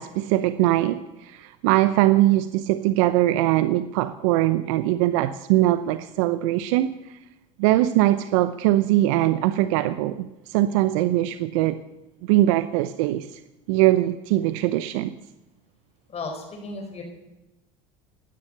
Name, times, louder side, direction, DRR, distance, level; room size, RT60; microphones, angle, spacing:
voice 1, 0.0-6.9 7.6-11.8 12.2-13.4 13.7-15.1, right 15 dB, 75° right, 13 dB, 0.7 m, -21 dB
voice 2, 16.1-17.0, left 3 dB, 40° left, 3 dB, 5.0 m, -34 dB
16.5 x 11.5 x 6.7 m, 0.99 s
hypercardioid pair, 80°, 17 cm